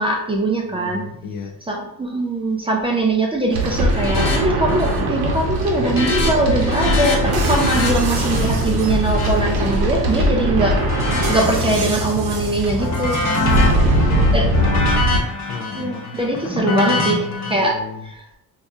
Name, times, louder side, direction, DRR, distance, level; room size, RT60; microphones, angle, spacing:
voice 1, 0.0-1.1 1.6-10.8 11.3-13.2 14.3-14.5 15.7-17.8 18.0-18.3, right 1 dB, 15° right, -1 dB, 0.3 m, -21 dB
voice 2, 0.7-1.6 13.5-14.8 15.5-16.2 16.9-17.3 17.6-18.0, left 5 dB, 65° left, 6 dB, 0.5 m, -33 dB
sound 1, 3.5-15.2, right 1 dB, 80° right, 0.8 m, -20 dB
sound 2, 3.9-4.4 4.7-5.1 5.4-10.2 10.7-12.1 12.4-17.5, left 3 dB, 45° left, 0.9 m, -26 dB
4.5 x 2.7 x 2.3 m, 0.81 s
cardioid pair, 170°, 36 cm